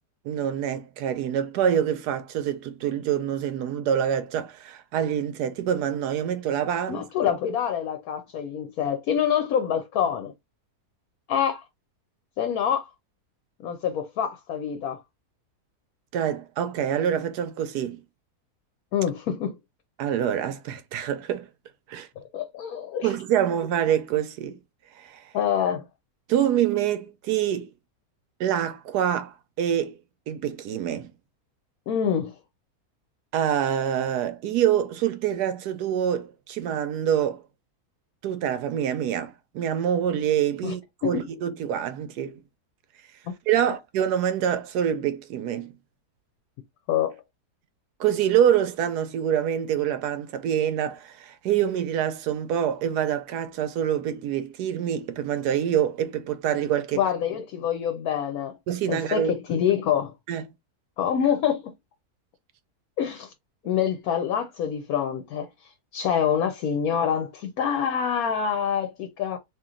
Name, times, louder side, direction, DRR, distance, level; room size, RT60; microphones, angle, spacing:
voice 1, 0.2-7.0 16.1-18.0 20.0-21.5 21.9-22.1 23.0-24.6 25.0-25.3 26.3-27.7 28.4-30.0 30.3-31.1 33.3-37.4 38.2-42.4 43.5-45.7 48.0-57.0 58.7-59.3 60.3-60.4, right 9 dB, 90° right, 1.2 m, -26 dB
voice 2, 6.9-10.3 11.3-11.6 12.4-12.8 13.6-15.0 18.9-19.6 22.3-23.1 25.3-25.9 31.9-32.3 40.6-40.7 41.0-41.1 46.9-47.2 56.9-58.6 58.9-60.1 61.0-61.7 63.0-63.3 63.6-69.4, left 8 dB, 70° left, 1.1 m, -26 dB
2.9 x 2.9 x 3.7 m
omnidirectional pair, 1.7 m